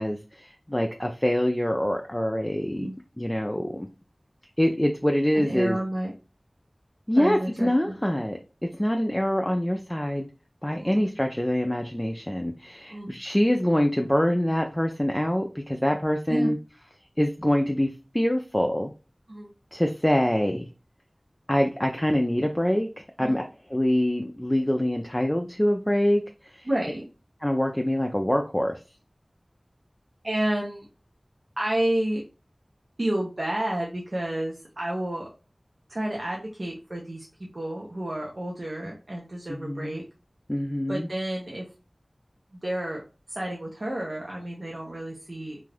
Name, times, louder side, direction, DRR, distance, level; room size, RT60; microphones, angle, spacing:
voice 1, 0.0-2.9 3.2-3.9 4.6-5.8 7.1-8.4 8.8-10.3 10.6-16.6 17.2-17.9 18.1-18.9 19.7-20.7 21.5-22.9 23.2-23.4 23.7-26.7 27.4-28.8 39.5-40.0 40.5-41.1, equal, 15° left, 2 dB, 0.4 m, -25 dB
voice 2, 5.3-6.1 7.2-7.9 10.8-11.0 12.9-13.2 16.3-16.5 19.3-19.5 23.2-23.4 26.7-27.0 30.2-30.8 31.6-32.2 33.0-35.3 35.9-37.2 37.5-40.0 40.9-41.7 42.5-43.0 43.3-45.6, right 1 dB, 65° right, -2 dB, 0.7 m, -30 dB
2.5 x 2.3 x 3.3 m, 0.32 s
wide cardioid pair, 45°, 0 cm